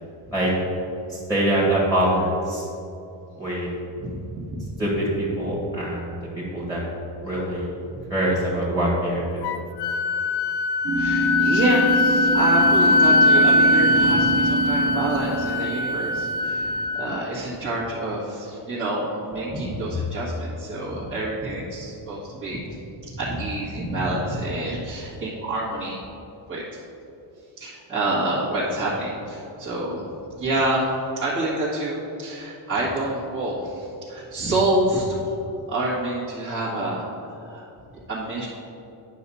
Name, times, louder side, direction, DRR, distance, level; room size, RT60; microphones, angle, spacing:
voice 1, 1.1-2.7 3.4-3.7 4.8-6.8 7.2-7.7 8.1-9.5, right 1 dB, 5° right, -7 dB, 1.9 m, -24 dB
voice 2, 4.0-4.6 10.9-26.0 26.5-26.6 27.6-30.0 30.4-30.9 31.2-35.2 35.7-37.0 37.3-37.7 38.1-38.5, right 1 dB, 25° right, -10 dB, 1.8 m, -27 dB
Wind instrument woodwind instrument, 9.4-17.2, left 2 dB, 55° left, 0.5 m, -21 dB
sound 1, 10.8-16.6, right 2 dB, 45° right, 1.3 m, -26 dB
9.3 x 6.0 x 4.2 m, 2.7 s
cardioid pair, 125°, 49 cm